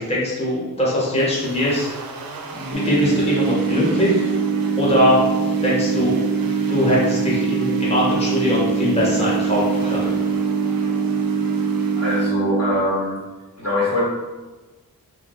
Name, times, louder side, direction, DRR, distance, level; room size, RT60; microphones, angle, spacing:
voice 1, 0.0-1.9 2.5-4.3 4.8-5.2 5.6-6.2 6.7-10.2, left 1 dB, 15° left, -6 dB, 0.8 m, -21 dB
sound 1, 1.2-12.3, right 3 dB, 65° right, 0.5 m, -37 dB
sound 2, 2.7-12.7, right 5 dB, 85° left, 1.0 m, -22 dB
voice 2, 11.9-13.2 13.6-14.1, left 2 dB, 45° left, -6 dB, 0.8 m, -22 dB
2.7 x 2.1 x 3.9 m, 1.2 s
wide cardioid pair, 145°, 37 cm